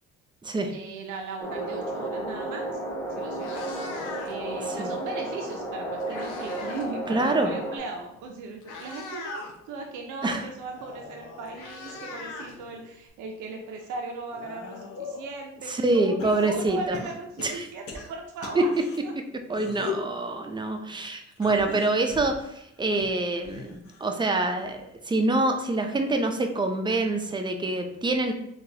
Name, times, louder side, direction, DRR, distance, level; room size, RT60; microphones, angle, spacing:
voice 1, 0.7-2.8 3.1-3.7 4.3-18.7 19.0-19.1 21.0-21.8, right 3 dB, 85° right, 2 dB, 0.6 m, -38 dB
sound 1, 1.4-7.8, right 1 dB, 5° left, 1.0 m, -33 dB
Meow, 2.9-3.0 3.2-4.5 5.6-6.9 7.2-7.5 8.2-8.3 8.6-9.5 10.9-11.0 11.2-13.1, left 3 dB, 85° left, 0.6 m, -40 dB
voice 2, 7.1-7.5 10.2-10.4 15.8-17.0 17.4-17.7 18.5-18.6 19.5-28.3, right 2 dB, 15° right, 5 dB, 0.4 m, -26 dB
sound 2, 10.5-12.9 13.4-15.3 16.2-19.0 19.5-20.1 21.3-24.2 24.5-25.0 26.1-26.2, left 5 dB, 50° left, 0.8 m, -41 dB
3.8 x 2.3 x 2.7 m, 0.77 s
cardioid pair, 90°, 30 cm